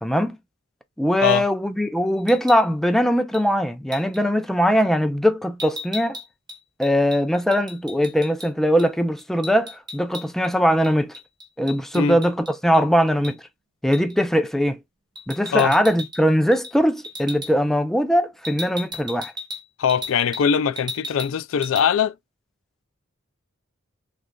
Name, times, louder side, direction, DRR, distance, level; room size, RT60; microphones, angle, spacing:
voice 1, 0.0-0.4 1.0-6.2 6.8-11.1 11.6-13.4 13.8-14.8 15.3-19.3, equal, ahead, 0.3 m, -21 dB
sound 1, 2.2-2.7 3.3-3.5 3.9-4.2 5.6-8.5 8.8-8.9 9.2-10.5 10.8-12.8 13.2-13.4 13.9-14.2 15.2-16.2 16.5-16.8 17.0-17.5 18.4-20.5 20.8-21.4 21.6-21.9, left 1 dB, 20° right, 0.9 m, -36 dB
voice 2, 19.8-22.1, left 7 dB, 80° left, 0.4 m, -21 dB
3.7 x 3.2 x 2.3 m
head